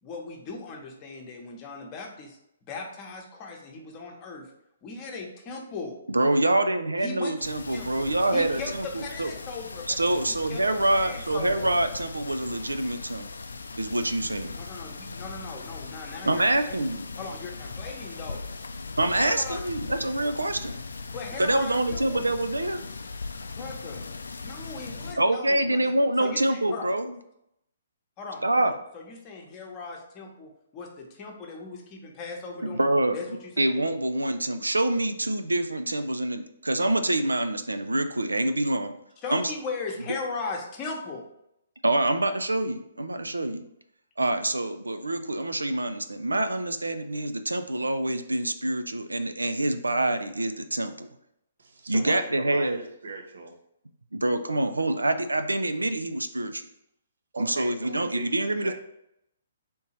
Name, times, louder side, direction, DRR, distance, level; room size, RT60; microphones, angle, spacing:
voice 1, 0.0-2.4 2.7-4.5 4.8-5.9 7.0-7.4 7.7-8.0 8.3-10.0 10.3-11.7 14.6-16.7 17.2-18.4 19.2-19.6 21.1-22.2 23.5-24.0 24.4-25.9 26.2-26.9 28.2-32.8 33.1-33.3 33.6-33.8 39.2-41.3, left 4 dB, 30° left, 1 dB, 0.9 m, -38 dB
voice 2, 6.1-9.3 9.9-13.3 13.7-14.6 16.2-17.1 19.0-20.8 21.4-22.8 25.2-27.1 28.4-28.7 32.6-33.2 33.6-38.9 39.3-39.5 41.8-43.6 44.2-51.1 51.9-52.8 54.1-56.6 57.4-58.7, right 1 dB, 90° right, 9 dB, 0.4 m, -26 dB
sound 1, 7.4-25.1, left 4 dB, 75° left, 0.4 m, -39 dB
voice 3, 51.6-53.6 57.3-58.7, right 3 dB, 70° right, 2 dB, 0.8 m, -38 dB
3.5 x 2.7 x 4.2 m, 0.79 s
figure-of-eight pair, 130°, 0 cm